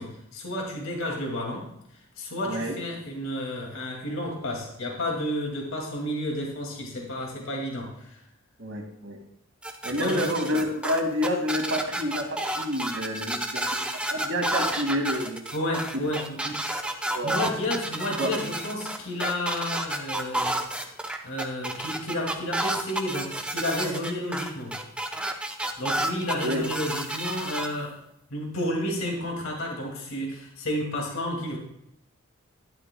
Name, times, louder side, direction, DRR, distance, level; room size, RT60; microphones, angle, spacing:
voice 1, 0.0-1.7 2.2-8.2 10.0-10.5 15.5-16.6 17.2-20.6 21.2-24.7 25.8-28.0 28.3-31.6, left 1 dB, 80° left, 0 dB, 2.3 m, -31 dB
voice 2, 2.4-2.8 8.6-9.2 9.8-15.4 15.9-16.1 16.8-17.5 18.2-18.4 26.4-26.7, equal, 70° right, 2 dB, 2.0 m, -29 dB
sound 1, 9.6-27.7, right 1 dB, 5° right, 0.6 m, -30 dB
12.0 x 11.5 x 2.2 m, 0.75 s
head